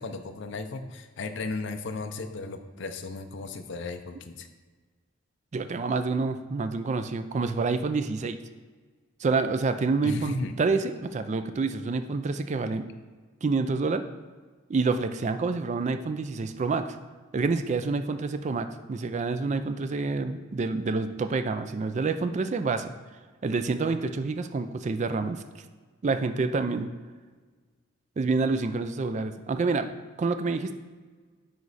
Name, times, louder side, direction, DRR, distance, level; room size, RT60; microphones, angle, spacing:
voice 1, 0.0-4.5 10.0-10.5, left 3 dB, 60° left, 7 dB, 0.5 m, -35 dB
voice 2, 5.5-8.4 9.2-12.9 13.4-14.0 14.7-17.0 17.3-22.9 23.4-25.4 26.0-26.9 28.2-29.9 30.2-30.7, right 4 dB, 35° right, 9 dB, 0.3 m, -28 dB
9.4 x 3.2 x 4.0 m, 1.4 s
head